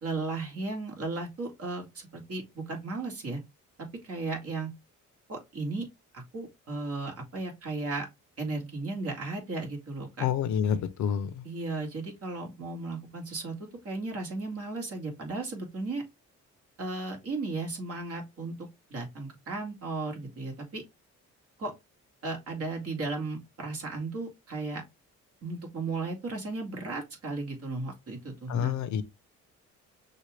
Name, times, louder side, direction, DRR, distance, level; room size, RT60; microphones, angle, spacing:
voice 1, 0.0-3.4 3.8-4.7 5.3-5.9 6.1-8.1 8.4-10.3 11.4-16.0 16.8-20.8 21.6-21.7 22.2-24.8 25.4-28.7, right 3 dB, 50° right, 2.1 m, -35 dB
voice 2, 10.2-11.4 28.5-29.0, left 8 dB, 70° left, 0.8 m, -28 dB
6.2 x 2.5 x 3.2 m
cardioid pair, 90°, 30 cm